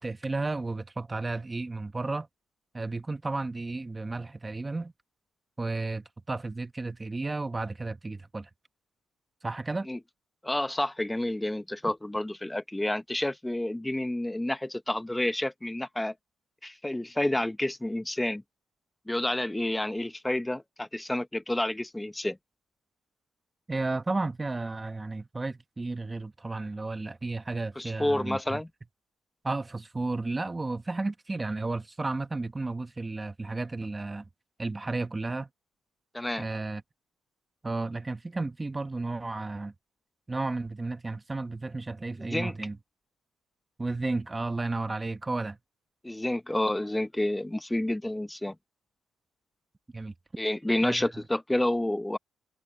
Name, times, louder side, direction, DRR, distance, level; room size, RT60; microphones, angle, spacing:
voice 1, 0.0-2.3 2.7-4.9 5.6-8.5 9.4-9.9 23.7-28.6 29.4-34.3 34.6-35.5 36.4-36.8 37.6-39.7 40.3-42.8 43.8-45.6 49.9-50.1 50.8-51.1, right 3 dB, 20° right, 1.5 m, -33 dB
voice 2, 10.4-16.1 16.6-18.4 19.1-22.4 27.8-28.7 36.1-36.4 42.2-42.6 46.0-48.5 50.4-52.2, left 1 dB, 10° left, 0.9 m, -29 dB
cardioid pair, 90°, 0 cm